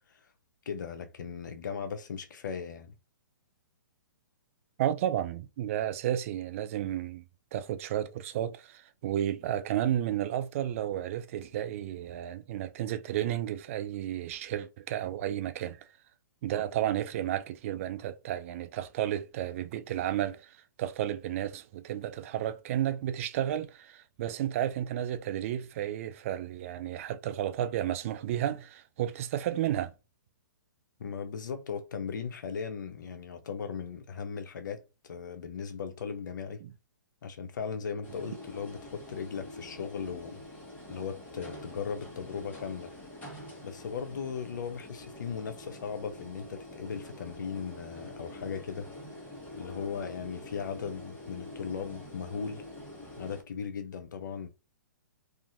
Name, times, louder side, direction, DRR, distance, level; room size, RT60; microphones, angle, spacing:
voice 1, 0.7-2.9 31.0-36.6 37.2-40.4 40.9-42.9 43.6-48.9 49.5-52.6 53.2-54.5, left 6 dB, 70° left, 0.6 m, -37 dB
voice 2, 4.8-7.2 7.5-15.8 16.4-29.9 36.6-36.7, right 11 dB, 45° right, 0.3 m, -32 dB
sound 1, 38.0-53.4, left 1 dB, 15° left, 1.2 m, -46 dB
2.7 x 2.4 x 2.5 m
hypercardioid pair, 130°, 10 cm